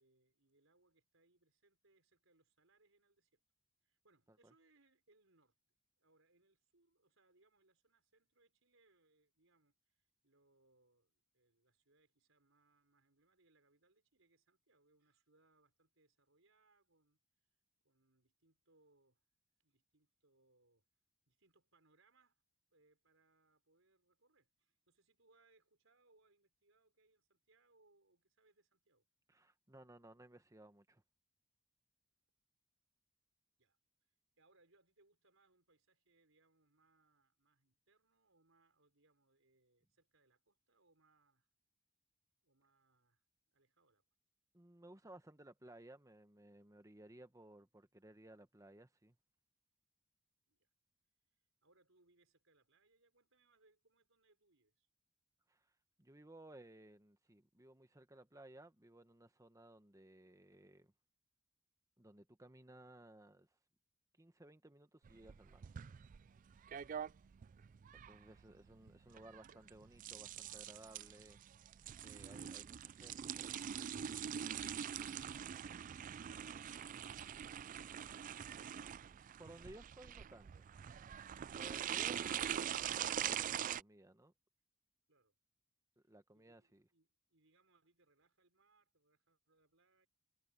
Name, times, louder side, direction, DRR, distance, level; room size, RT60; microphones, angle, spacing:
voice 1, 0.0-3.4 3.8-5.6 6.0-17.2 17.8-19.2 19.6-20.9 21.3-22.4 22.7-29.1 33.6-33.8 34.4-41.5 42.4-44.1 50.5-50.7 51.3-54.9 67.4-67.8 85.1-85.4 86.3-90.1, right 3 dB, 75° right, 5.3 m, -75 dB
voice 2, 29.3-31.0 44.5-49.2 55.5-55.7 56.0-60.9 62.0-63.5 64.2-65.6 68.1-73.8 79.4-80.6 81.5-84.3 86.1-86.8, right 1 dB, 15° right, 1.2 m, -59 dB
sound 1, 65.0-83.8, right 9 dB, 40° right, 0.3 m, -44 dB
head